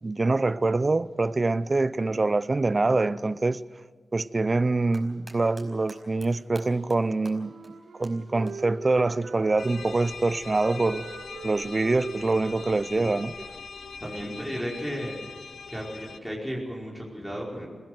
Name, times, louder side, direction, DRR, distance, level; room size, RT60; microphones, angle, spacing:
voice 1, 0.0-3.6 4.1-7.5 8.0-11.1 11.4-13.3, right 3 dB, 40° right, 0.6 m, -25 dB
sound 1, 4.7-5.6 5.9-6.3 6.6-7.0 7.3-7.4 7.6-7.7 8.0-8.1 8.5-8.6 10.1-10.2, right 1 dB, 15° right, 5.3 m, -47 dB
Wind instrument woodwind instrument, 7.0-10.0 10.4-14.3, right 4 dB, 80° right, 2.3 m, -43 dB
sound 2, 9.6-16.2, left 5 dB, 75° left, 0.9 m, -41 dB
voice 2, 14.0-15.1 15.7-17.7, equal, 5° left, 5.0 m, -34 dB
21.5 x 17.0 x 7.9 m
cardioid pair, 60°, 0 cm